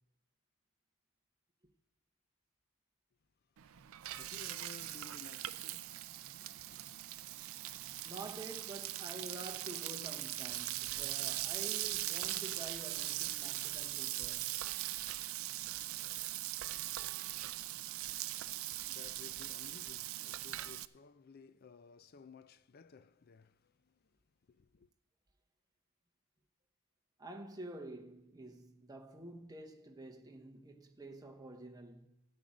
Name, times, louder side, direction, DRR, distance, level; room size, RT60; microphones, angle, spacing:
voice 1, 3.6-6.0 6.4-6.8 18.2-24.2 24.5-24.9, left 5 dB, 45° left, 0.4 m, -57 dB
Frying (food), 3.6-20.9, right 15 dB, 65° right, 0.4 m, -40 dB
voice 2, 8.0-14.6 27.2-32.1, right 2 dB, 15° right, 0.9 m, -49 dB
13.0 x 8.7 x 5.1 m
head